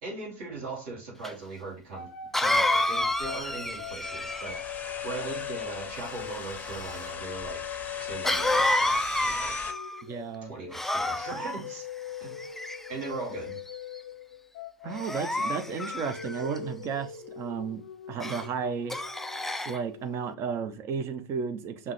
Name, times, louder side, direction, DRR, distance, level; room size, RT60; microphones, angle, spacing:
voice 1, 0.0-7.6 8.0-9.6 10.5-11.9 12.2-12.4 12.9-13.6, right 3 dB, 55° right, 2.4 m, -39 dB
Cough, 1.2-1.3 2.3-4.7 8.2-10.0 10.7-11.6 12.4-13.1 13.7-14.0 15.0-16.6 18.2-18.5 18.9-19.8, left 1 dB, 5° left, 0.3 m, -29 dB
sound 1, 1.9-9.3 9.6-20.7, left 10 dB, 60° left, 0.6 m, -41 dB
sound 2, 3.0-9.7, left 5 dB, 20° left, 0.7 m, -40 dB
voice 2, 10.1-10.5 14.8-17.8 18.1-19.0 19.7-21.9, right 6 dB, 35° right, 0.7 m, -33 dB
5.6 x 2.8 x 3.2 m
figure-of-eight pair, 85°, 8 cm